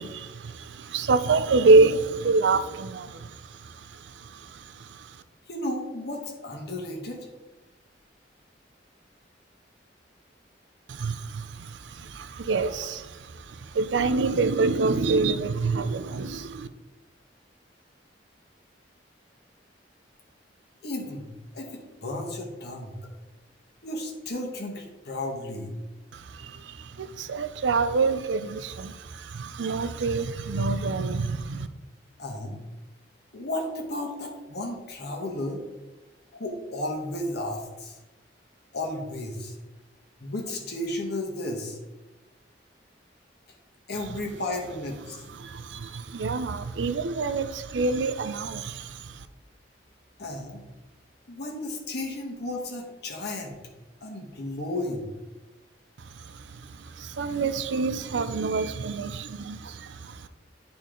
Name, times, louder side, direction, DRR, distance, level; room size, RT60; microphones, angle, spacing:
voice 1, 0.0-5.2 10.9-16.7 26.1-31.7 45.3-49.3 56.0-60.3, right 3 dB, 85° right, 11 dB, 0.5 m, -27 dB
voice 2, 5.5-7.3 20.8-23.0 23.8-25.8 32.2-32.6 33.3-35.6 36.3-38.0 38.7-39.6 40.2-41.8 43.9-45.2 50.2-50.6 51.3-53.6 54.0-55.1, left 1 dB, 65° left, 1 dB, 1.3 m, -33 dB
10.0 x 4.3 x 3.7 m, 1.1 s
head